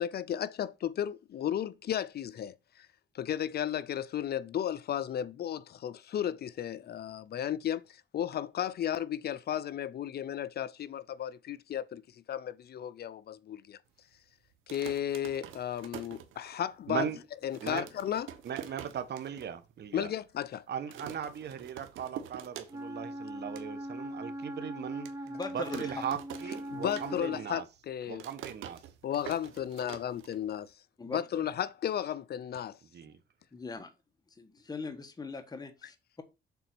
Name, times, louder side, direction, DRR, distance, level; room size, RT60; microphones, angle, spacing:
voice 1, 0.0-2.9 3.1-13.8 14.7-17.1 17.4-18.3 19.9-20.6 26.7-28.3 29.0-30.7 31.1-32.8, left 10 dB, 55° left, 0.5 m, -34 dB
sound 1, 14.5-16.8 17.1-17.2 17.4-19.5 19.8-19.9 20.1-20.5 20.9-23.1 23.3-23.7 24.2-24.3 25.1-27.5 27.8-30.7, right 10 dB, 90° right, 1.1 m, -46 dB
voice 2, 16.9-17.2 17.6-17.9 18.4-20.1 20.7-25.1 25.5-27.6 28.1-28.8 32.9-33.2, right 8 dB, 55° right, 1.2 m, -38 dB
Wind instrument woodwind instrument, 22.7-27.5, right 1 dB, 15° right, 1.0 m, -40 dB
voice 3, 25.2-26.0 31.0-31.2 33.5-33.9 34.3-36.2, left 4 dB, 20° left, 1.2 m, -40 dB
7.0 x 4.0 x 6.0 m
cardioid pair, 90°, 20 cm